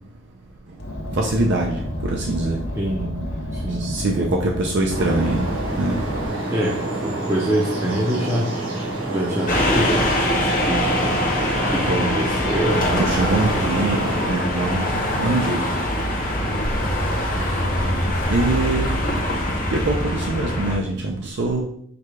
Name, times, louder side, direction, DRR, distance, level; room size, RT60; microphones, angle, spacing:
Car, 0.8-6.3, left 1 dB, 70° left, 0.9 m, -30 dB
voice 1, 1.1-2.6 3.8-5.5 5.8-6.0 11.9-12.1 13.0-14.8 15.1-15.6 18.3-18.9 19.7-21.6, right 2 dB, 60° right, 0 dB, 0.5 m, -23 dB
voice 2, 2.8-3.2 3.5-3.9 6.5-8.6 9.1-13.7 14.7-15.0, right 1 dB, 15° right, -4 dB, 0.6 m, -26 dB
sound 1, 4.9-14.3, right 2 dB, 80° right, 1.3 m, -28 dB
sound 2, 9.5-20.8, left 1 dB, 45° left, 1.0 m, -23 dB
4.7 x 2.3 x 4.7 m, 0.66 s
head